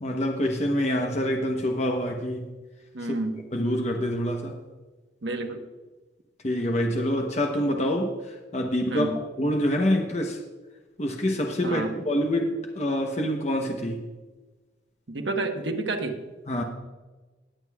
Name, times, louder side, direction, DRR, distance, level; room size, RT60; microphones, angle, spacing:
voice 1, 0.0-2.5 3.5-4.6 6.4-9.1 9.4-10.4 11.0-14.0 16.5-16.6, equal, 35° left, 2 dB, 0.9 m, -26 dB
voice 2, 2.9-3.4 5.2-5.6 8.9-9.2 11.6-11.9 15.1-16.2, right 2 dB, 80° right, 4 dB, 1.2 m, -30 dB
20.0 x 8.1 x 2.3 m, 1.2 s
head